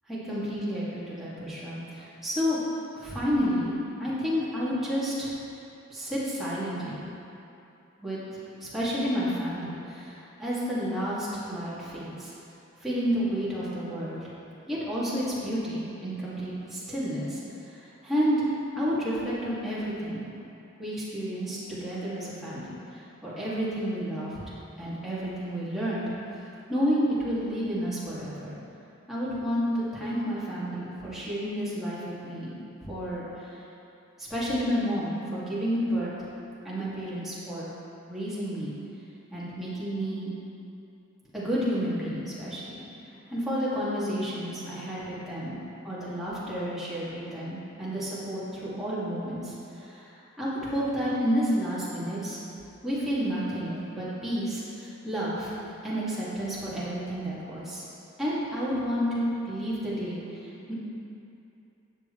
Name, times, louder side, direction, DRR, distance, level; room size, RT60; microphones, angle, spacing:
voice 1, 0.1-2.6 3.0-5.3 5.9-7.0 8.0-8.2 8.6-12.3 12.8-14.2 14.7-17.4 17.7-18.4 18.8-20.2 20.8-26.0 26.3-26.4 26.7-28.5 29.1-32.5 32.8-33.5 34.2-36.1 36.6-37.7 38.1-38.7 39.3-40.3 41.3-42.8 43.3-45.6 45.8-52.4 52.8-55.5 55.8-57.8 58.2-60.7, equal, ahead, -10 dB, 2.2 m, -30 dB
12.5 x 8.2 x 3.2 m, 2.8 s
head